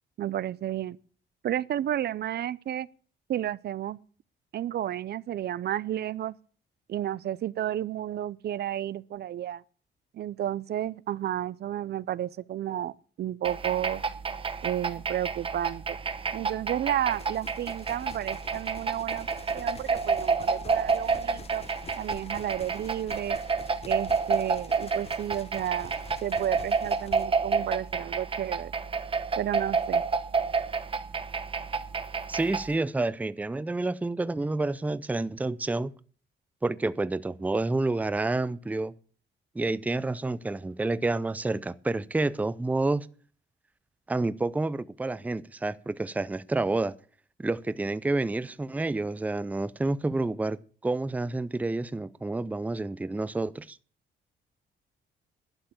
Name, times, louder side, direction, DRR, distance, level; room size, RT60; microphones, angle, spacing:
voice 1, 0.2-1.0 1.4-2.9 3.3-4.0 4.5-6.3 6.9-9.6 10.1-14.0 14.6-16.0 16.3-19.3 19.5-21.7 22.0-23.4 23.8-28.7 29.4-30.0, right 11 dB, 60° right, 0.5 m, -32 dB
sound 1, 13.4-32.7, right 5 dB, 30° right, 0.9 m, -30 dB
sound 2, 17.1-27.3, left 5 dB, 30° left, 1.0 m, -48 dB
voice 2, 32.3-35.9 36.6-38.9 39.5-43.1 44.1-46.9 47.4-53.8, right 2 dB, 10° right, 0.5 m, -29 dB
11.5 x 6.9 x 8.8 m
cardioid pair, 115°, 19 cm